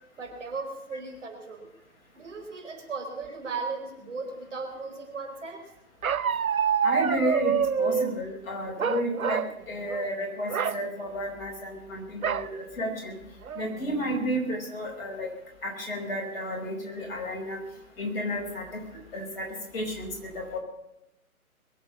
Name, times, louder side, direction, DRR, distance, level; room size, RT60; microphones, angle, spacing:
voice 1, 0.2-1.7 2.1-5.7, right 4 dB, 55° right, 4 dB, 4.6 m, -37 dB
Bark, 6.0-8.1 8.8-9.5 9.9-10.1 10.5-10.8 12.2-12.5 13.0-13.1 13.5-13.9, right 7 dB, 70° right, 0.7 m, -26 dB
voice 2, 6.8-13.2 13.6-15.3 15.6-17.6 18.0-18.8 19.1-19.5 19.7-20.6, equal, 40° left, 0 dB, 5.3 m, -32 dB
22.5 x 8.2 x 7.1 m, 0.89 s
figure-of-eight pair, 140°, 44 cm